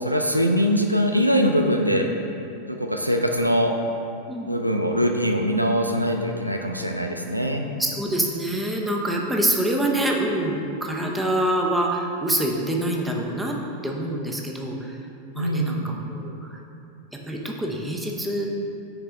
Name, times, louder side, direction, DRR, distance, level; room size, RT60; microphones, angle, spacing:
voice 1, 0.0-2.1 2.7-3.7 4.5-7.7 15.4-15.8, equal, 90° right, 4 dB, 0.4 m, -22 dB
voice 2, 7.8-13.5 13.8-15.0 15.3-16.5 17.3-18.5, right 1 dB, 5° right, 0 dB, 0.7 m, -25 dB
6.6 x 4.2 x 3.4 m, 2.6 s
figure-of-eight pair, 90°, 0 cm